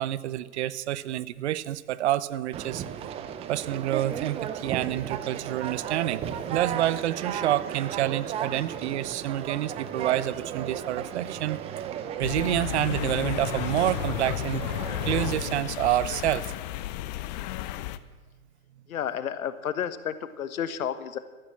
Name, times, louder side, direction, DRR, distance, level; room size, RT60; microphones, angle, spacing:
voice 1, 0.0-2.8 3.5-6.2 6.5-11.6 12.2-14.6 15.0-16.5, right 13 dB, 50° right, 18 dB, 0.7 m, -28 dB
Conversation, 2.5-15.6, right 9 dB, 15° right, 0.6 m, -35 dB
sound 1, 12.2-18.0, left 14 dB, 30° left, 0.6 m, -32 dB
voice 2, 18.9-21.2, left 9 dB, 75° left, 13 dB, 1.4 m, -31 dB
13.5 x 13.0 x 7.6 m, 1.3 s
hypercardioid pair, 130°, 43 cm